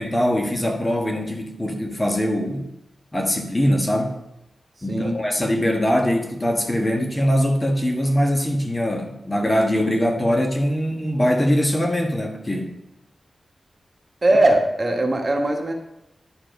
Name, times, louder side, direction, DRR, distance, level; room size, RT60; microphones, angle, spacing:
voice 1, 0.0-2.7 3.1-4.1 4.8-12.7, equal, 25° left, 2 dB, 1.5 m, -22 dB
voice 2, 4.9-5.2 14.2-15.7, right 1 dB, 45° right, 2 dB, 1.4 m, -19 dB
11.0 x 4.6 x 5.2 m, 0.88 s
cardioid pair, 60°, 0 cm